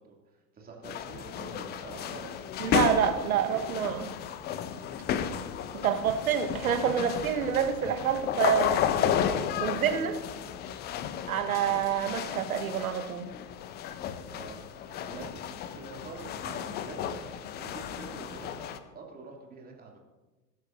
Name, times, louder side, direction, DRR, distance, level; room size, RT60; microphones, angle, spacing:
voice 1, 0.0-2.4 2.9-3.1 3.3-3.8 14.3-17.2 17.6-20.0, right 4 dB, 20° right, -1 dB, 2.6 m, -46 dB
sound 1, 0.8-18.8, left 9 dB, 20° left, 0.7 m, -33 dB
voice 2, 2.6-4.1 5.7-8.7 9.6-10.2 11.3-13.3, right 8 dB, 60° right, 8 dB, 1.4 m, -27 dB
21.5 x 12.0 x 2.7 m, 1.2 s
figure-of-eight pair, 95°, 48 cm